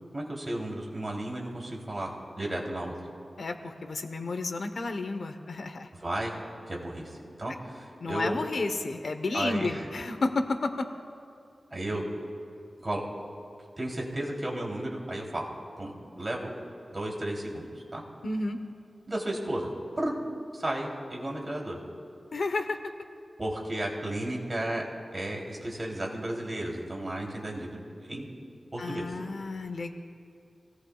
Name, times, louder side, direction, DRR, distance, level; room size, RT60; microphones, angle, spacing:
voice 1, 0.1-2.1 2.4-2.9 6.0-6.3 6.7-7.1 7.4-8.3 9.3-9.8 11.7-12.1 12.8-13.0 13.8-15.5 15.8-16.5 16.9-17.7 17.9-18.0 19.1-19.7 20.0-20.1 20.5-21.8 23.4-24.8 25.1-28.3 28.7-29.1, right 1 dB, 30° right, -2 dB, 3.2 m, -33 dB
voice 2, 3.4-5.9 8.0-10.9 18.2-18.6 22.3-22.8 28.8-29.9, left 3 dB, 75° left, 7 dB, 1.0 m, -31 dB
27.5 x 18.0 x 2.4 m, 2.4 s
wide cardioid pair, 85°, 0 cm